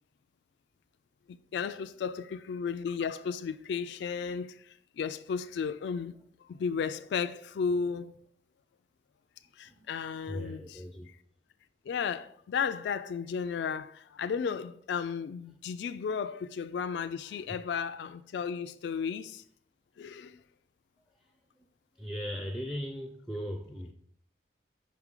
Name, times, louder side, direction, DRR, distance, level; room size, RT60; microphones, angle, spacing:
voice 1, 1.3-6.1 6.4-8.1 9.6-10.8 11.9-19.4 20.0-20.4, left 6 dB, 80° left, 0.3 m, -34 dB
voice 2, 10.3-11.1 17.0-17.4 22.0-23.9, equal, ahead, 0.4 m, -38 dB
5.6 x 4.7 x 3.7 m
head